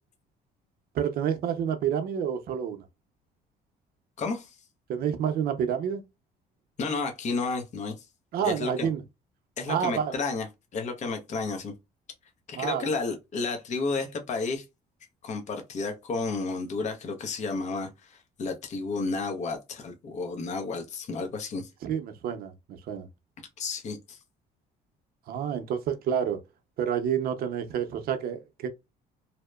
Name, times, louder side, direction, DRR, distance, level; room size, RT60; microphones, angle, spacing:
voice 1, 0.9-2.8 4.9-6.0 8.3-9.0 9.7-10.1 12.5-12.9 21.8-23.1 25.3-26.4 26.8-28.7, right 8 dB, 60° right, 0.6 m, -29 dB
voice 2, 4.2-4.5 6.8-8.1 8.4-8.9 9.6-10.5 10.7-11.7 12.5-14.6 15.2-21.7 23.6-24.2, left 4 dB, 45° left, 0.7 m, -32 dB
2.8 x 2.1 x 2.2 m
cardioid pair, 110°, 17 cm